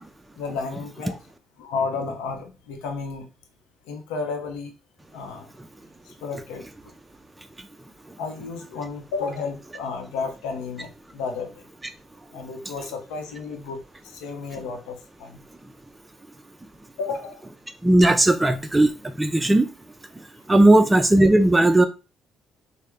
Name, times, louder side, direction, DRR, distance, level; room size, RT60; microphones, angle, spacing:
voice 1, 0.3-1.2 1.6-3.3 3.8-4.7 5.1-5.5 6.0-7.0 8.2-11.6 12.3-15.4 17.0-17.5, left 4 dB, 85° left, 0.6 m, -32 dB
voice 2, 17.8-19.7 20.5-21.8, right 1 dB, 15° right, 0.3 m, -17 dB
3.2 x 2.0 x 3.4 m
supercardioid pair, 70°, 0 cm